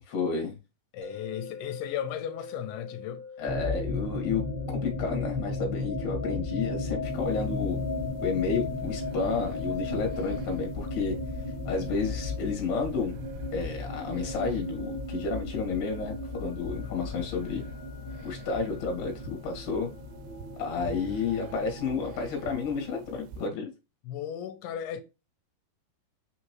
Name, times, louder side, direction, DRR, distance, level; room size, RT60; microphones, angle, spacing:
voice 1, 0.1-0.6 3.4-7.8 8.2-11.2 11.7-13.2 13.5-17.6 18.2-19.9 20.6-23.7, left 5 dB, 55° left, 2.2 m, -31 dB
voice 2, 0.9-3.2 16.8-17.2 24.1-25.0, left 10 dB, 85° left, 2.6 m, -36 dB
sound 1, 1.0-14.1, left 4 dB, 60° right, 1.1 m, -48 dB
sound 2, 3.5-23.3, left 2 dB, 5° left, 1.1 m, -35 dB
sound 3, 7.1-23.5, right 6 dB, 80° right, 2.2 m, -49 dB
5.7 x 2.9 x 2.9 m
omnidirectional pair, 4.5 m